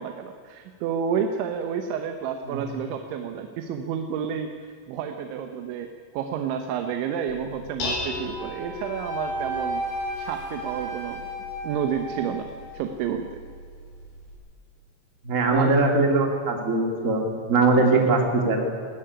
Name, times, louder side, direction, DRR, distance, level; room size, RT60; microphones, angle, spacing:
voice 1, 0.0-9.8 10.2-11.2 11.6-13.4 15.5-15.7 17.7-18.1, right 7 dB, 90° right, 6 dB, 3.4 m, -30 dB
Dishes pots and pans, 7.3-14.4, left 2 dB, 85° left, 7.2 m, -38 dB
Wind instrument woodwind instrument, 8.4-12.6, right 1 dB, 60° left, 7.4 m, -33 dB
voice 2, 15.2-17.2 17.5-18.6, right 3 dB, 25° right, 2 dB, 2.1 m, -21 dB
20.5 x 15.5 x 10.0 m, 2.3 s
omnidirectional pair, 5.2 m